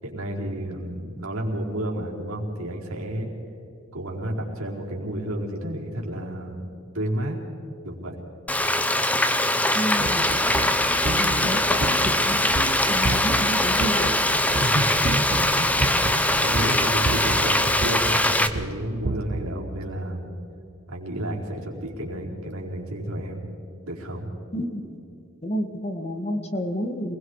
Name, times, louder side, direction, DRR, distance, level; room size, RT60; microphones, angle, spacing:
voice 1, 0.0-3.3 3.9-7.4 7.8-8.2 14.5-20.2 20.9-23.4 23.8-24.3, right 1 dB, 85° right, -1 dB, 4.4 m, -31 dB
Frying (food), 8.5-18.5, left 1 dB, 5° left, 0.9 m, -22 dB
voice 2, 9.7-10.4 11.2-11.6 11.9-14.1 24.5-24.8 25.4-27.2, equal, 30° left, 6 dB, 1.7 m, -30 dB
sound 1, 10.0-19.5, right 3 dB, 40° right, 0.6 m, -31 dB
27.5 x 21.0 x 4.8 m, 2.7 s
head